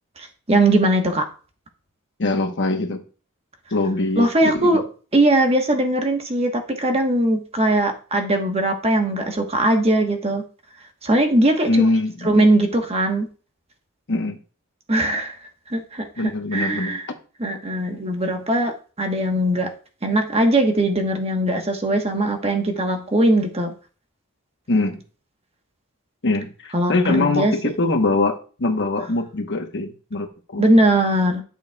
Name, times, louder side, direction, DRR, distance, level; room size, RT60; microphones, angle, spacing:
voice 1, 0.2-1.2 4.2-4.8 5.1-10.4 11.0-11.8 12.2-13.3 14.9-15.4 15.7-17.0 17.4-19.7 20.0-23.7 26.7-27.5 30.6-31.4, right 1 dB, 30° right, 3 dB, 1.3 m, -20 dB
voice 2, 2.2-3.0 3.7-4.8 11.7-12.5 14.1-14.4 16.2-17.0 24.7-25.0 26.2-30.6, left 2 dB, 55° left, 4 dB, 1.2 m, -23 dB
11.0 x 7.0 x 2.4 m, 0.37 s
head